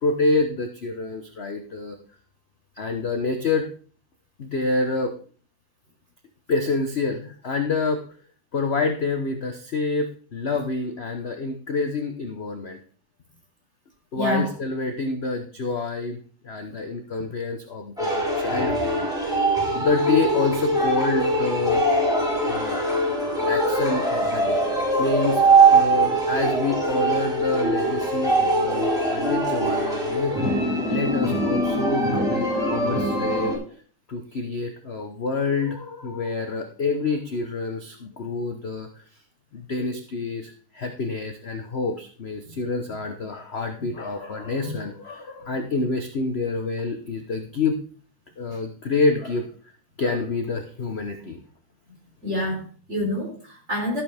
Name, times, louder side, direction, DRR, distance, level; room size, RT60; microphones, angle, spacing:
voice 1, 0.0-2.0 2.8-3.7 4.4-5.1 6.5-8.0 8.5-12.8 14.1-16.2 16.4-19.1 19.7-21.8 22.4-22.8 23.5-25.4 25.7-30.5 30.9-33.8 34.1-39.0 39.5-47.8 48.4-49.7 50.0-51.4, left 3 dB, 45° left, 5 dB, 0.9 m, -27 dB
voice 2, 14.2-14.5 42.5-42.6 44.6-44.8 52.2-54.0, left 1 dB, 30° right, -1 dB, 4.4 m, -27 dB
sound 1, 18.0-33.6, right 2 dB, ahead, 4.6 m, -22 dB
13.0 x 8.8 x 3.5 m, 0.41 s
omnidirectional pair, 2.2 m